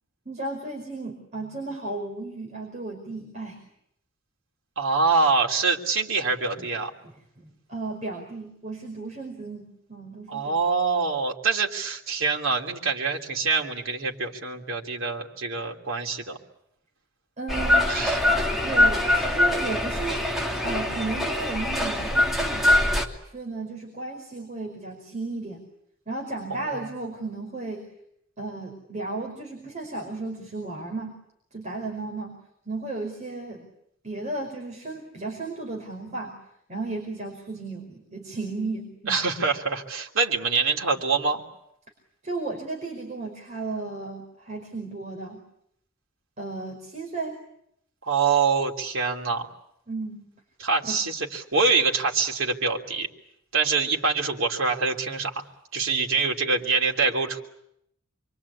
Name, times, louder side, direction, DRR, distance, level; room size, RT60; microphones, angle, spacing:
voice 1, 0.2-3.6 7.4-10.6 17.4-17.9 18.5-20.2 20.6-22.8 23.2-25.6 26.1-27.9 28.4-31.1 31.5-32.3 32.6-33.7 34.0-36.4 36.7-39.2 42.2-45.4 46.4-47.4 49.9-50.3 50.8-51.0, right 3 dB, 35° right, 0 dB, 5.1 m, -34 dB
voice 2, 4.8-6.9 10.3-16.4 17.8-18.2 26.5-26.9 39.1-41.4 48.1-49.5 50.6-53.1 53.5-55.4 55.7-57.4, right 4 dB, 75° right, 1 dB, 3.3 m, -25 dB
sound 1, 17.5-23.1, left 1 dB, ahead, 2.7 m, -23 dB
27.5 x 24.0 x 8.7 m, 0.76 s
head